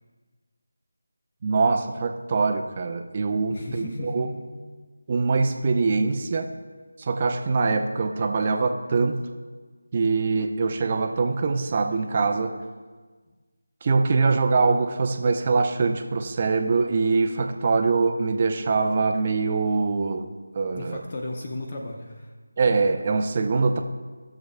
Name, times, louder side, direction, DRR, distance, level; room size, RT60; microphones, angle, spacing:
voice 1, 1.4-4.3 5.1-6.5 7.0-9.2 9.9-12.5 13.8-20.3 20.5-21.0 22.6-23.8, right 4 dB, 30° right, 5 dB, 0.6 m, -23 dB
voice 2, 3.5-4.4 13.3-13.4 20.7-22.3, left 2 dB, 35° left, 1 dB, 0.9 m, -35 dB
18.0 x 6.9 x 2.3 m, 1.4 s
figure-of-eight pair, 165°, 0 cm